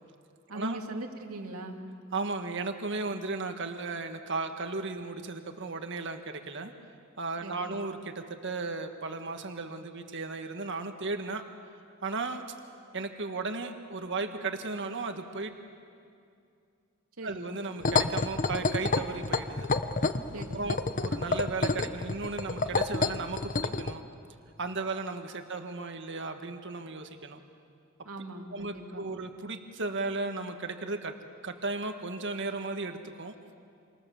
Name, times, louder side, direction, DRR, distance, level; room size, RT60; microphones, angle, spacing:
voice 1, 0.5-1.8 7.4-7.8 17.2-17.5 20.3-20.7 28.0-29.1, right 2 dB, 80° right, 3 dB, 2.5 m, -40 dB
voice 2, 2.1-6.7 7.2-11.4 12.0-12.4 12.9-15.5 17.2-19.7 20.5-24.0 24.6-27.4 28.5-31.1 31.4-33.3, right 3 dB, 55° right, 6 dB, 1.8 m, -35 dB
sound 1, 17.8-23.9, left 3 dB, 40° left, 0.9 m, -28 dB
28.0 x 26.5 x 7.3 m, 2.5 s
head